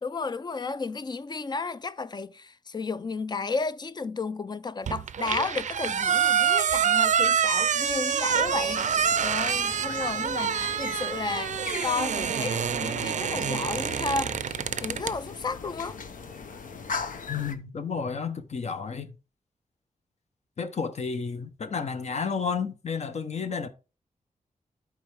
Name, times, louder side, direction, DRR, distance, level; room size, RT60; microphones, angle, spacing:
voice 1, 0.0-16.0, left 4 dB, 30° left, 0.4 m, -33 dB
sound 1, 4.9-15.2, right 8 dB, 65° right, 0.4 m, -26 dB
sound 2, 8.3-17.6, left 5 dB, 80° left, 0.9 m, -39 dB
voice 2, 17.3-19.1 20.6-23.7, left 5 dB, 55° left, 0.9 m, -31 dB
12.0 x 4.6 x 3.5 m
wide cardioid pair, 140°, 14 cm